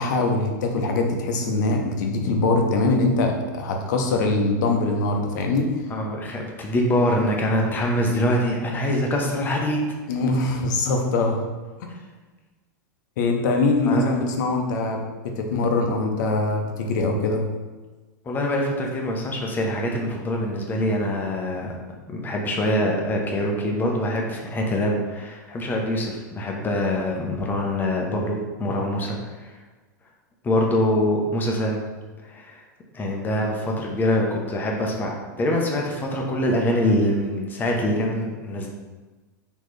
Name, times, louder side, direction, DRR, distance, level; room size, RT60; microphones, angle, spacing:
voice 1, 0.0-5.9 10.1-11.5 13.2-17.4, left 2 dB, 70° left, 3 dB, 0.7 m, -23 dB
voice 2, 5.9-9.8 13.9-14.0 18.2-21.7 22.1-29.5 30.4-31.8 32.2-32.6 32.9-38.7, left 1 dB, 20° left, 0 dB, 0.7 m, -24 dB
4.1 x 3.0 x 3.2 m, 1.3 s
supercardioid pair, 130°, 10 cm